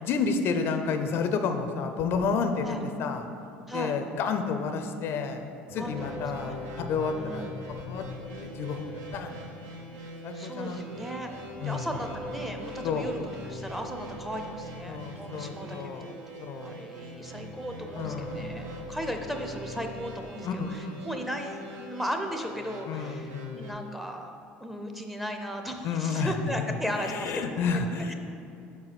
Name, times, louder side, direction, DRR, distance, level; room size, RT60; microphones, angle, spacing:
voice 1, 0.0-3.3 3.7-8.0 8.4-9.4 9.9-10.8 11.6-11.9 12.8-13.0 14.9-16.1 16.4-16.7 17.9-18.5 20.4-21.0 22.9-23.6 25.8-26.3 26.9-28.1, left 5 dB, 60° left, 7 dB, 0.5 m, -31 dB
sound 1, 5.7-9.8 10.7-16.4 16.8-20.2, equal, 40° right, 1.5 m, -43 dB
voice 2, 5.8-6.6 7.2-7.7 10.3-11.3 11.6-13.2 13.4-16.2 16.5-27.8 28.1-28.2, equal, 5° right, 4 dB, 0.6 m, -36 dB
sound 2, 5.9-23.7, right 1 dB, 70° right, 0.8 m, -43 dB
4.7 x 4.6 x 5.8 m, 2.6 s
supercardioid pair, 90°, 5 cm